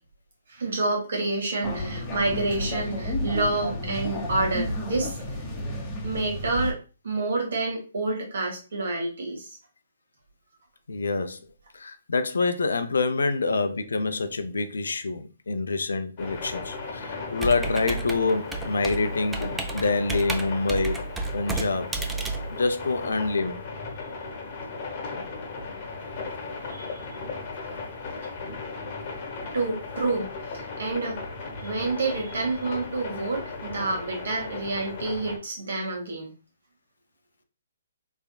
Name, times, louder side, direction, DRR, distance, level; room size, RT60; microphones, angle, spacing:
voice 1, 0.5-5.2 6.0-6.8 7.0-9.5 26.7-27.0 29.5-31.2 31.6-36.3, right 2 dB, 70° right, 1.7 m, -28 dB
sound 1, 1.6-6.7, left 1 dB, 20° left, 0.8 m, -31 dB
voice 2, 10.9-11.4 11.7-21.0 21.3-21.9 22.5-23.6, left 3 dB, 75° left, 0.5 m, -26 dB
sound 2, 16.2-35.4, left 4 dB, 40° left, 1.0 m, -37 dB
Computer keyboard, 17.4-23.3, right 3 dB, 10° right, 0.4 m, -32 dB
3.4 x 3.3 x 2.3 m
hypercardioid pair, 135°, 0 cm